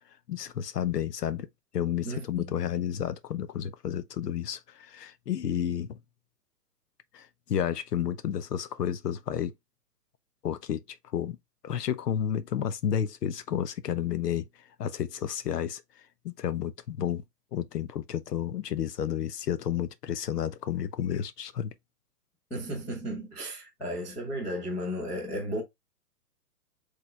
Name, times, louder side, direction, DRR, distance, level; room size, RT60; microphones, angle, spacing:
voice 1, 0.3-1.5 1.7-6.0 7.1-9.5 10.4-10.8 11.1-11.4 11.6-14.5 14.8-15.8 16.2-17.2 17.5-21.7, left 9 dB, 85° left, 0.8 m, -31 dB
voice 2, 2.0-2.6 22.5-25.6, equal, 5° left, 0.5 m, -34 dB
4.1 x 3.3 x 3.3 m
hypercardioid pair, 145°, 47 cm